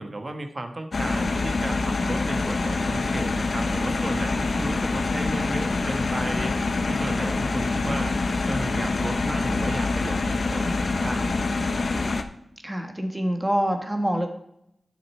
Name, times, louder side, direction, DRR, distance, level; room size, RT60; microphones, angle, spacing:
voice 1, 0.0-6.5 6.9-8.2 8.5-11.6, right 2 dB, 35° right, 6 dB, 1.2 m, -34 dB
sound 1, 0.9-12.2, left 3 dB, 60° left, 0.7 m, -25 dB
sound 2, 4.2-10.3, left 1 dB, 20° left, 1.9 m, -48 dB
voice 2, 12.6-14.3, equal, 15° right, 5 dB, 1.4 m, -26 dB
11.5 x 6.5 x 4.4 m, 0.78 s
wide cardioid pair, 95°, 0 cm